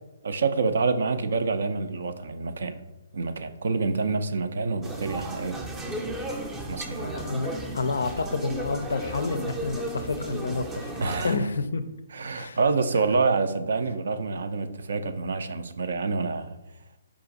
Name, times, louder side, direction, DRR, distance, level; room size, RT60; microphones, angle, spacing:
voice 1, 0.2-2.8 3.1-5.6 6.7-7.1 11.0-11.4 12.1-16.6, right 4 dB, 70° right, 10 dB, 0.4 m, -27 dB
sound 1, 4.8-11.4, right 1 dB, 15° right, 0.5 m, -34 dB
voice 2, 7.0-10.9 11.2-11.8 12.3-12.6, left 3 dB, 75° left, 11 dB, 0.4 m, -29 dB
4.8 x 2.5 x 3.8 m, 0.95 s
hypercardioid pair, 135°, 0 cm